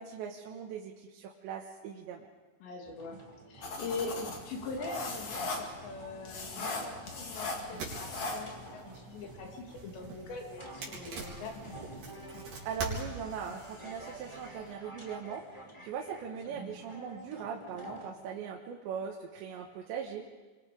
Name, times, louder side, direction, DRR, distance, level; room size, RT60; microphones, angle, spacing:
voice 1, 0.0-2.3 12.7-20.3, right 7 dB, 85° right, 1 dB, 3.6 m, -40 dB
voice 2, 2.6-3.2 3.5-11.7, left 3 dB, 75° left, 2 dB, 4.9 m, -42 dB
sound 1, 2.8-18.1, right 1 dB, 10° left, 1.9 m, -50 dB
sound 2, 3.6-8.7, left 3 dB, 45° left, 3.0 m, -39 dB
sound 3, 7.2-14.7, right 3 dB, 65° right, 6.0 m, -45 dB
29.0 x 24.5 x 5.2 m, 1.3 s
omnidirectional pair, 5.1 m